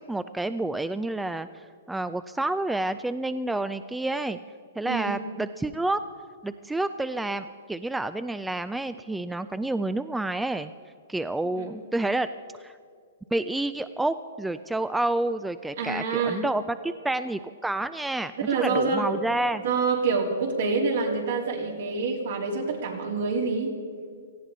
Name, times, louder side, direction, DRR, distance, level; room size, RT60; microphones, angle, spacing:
voice 1, 0.0-4.4 4.8-6.0 6.4-10.7 11.1-12.3 12.6-12.8 13.3-19.6, right 2 dB, 5° right, 12 dB, 0.3 m, -29 dB
voice 2, 4.8-5.2 11.5-11.7 15.8-16.4 18.4-19.2 19.6-23.7, right 4 dB, 70° right, 0 dB, 3.3 m, -26 dB
18.0 x 15.0 x 4.0 m, 2.1 s
hypercardioid pair, 140°, 0 cm